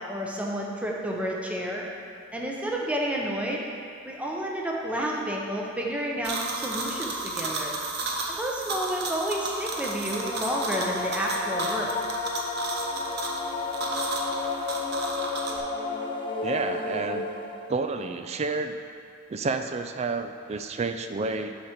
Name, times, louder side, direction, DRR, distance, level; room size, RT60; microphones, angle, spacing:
voice 1, 0.0-1.9 2.3-3.6 4.0-7.7 8.3-11.9, equal, 5° right, -2 dB, 0.7 m, -30 dB
sound 1, 6.2-15.6, right 3 dB, 50° right, 0.9 m, -33 dB
sound 2, 9.7-17.8, left 3 dB, 25° left, 0.5 m, -32 dB
voice 2, 16.4-17.3 17.7-18.8 19.3-21.6, right 3 dB, 30° right, 8 dB, 0.3 m, -30 dB
7.2 x 5.0 x 5.8 m, 2.5 s
head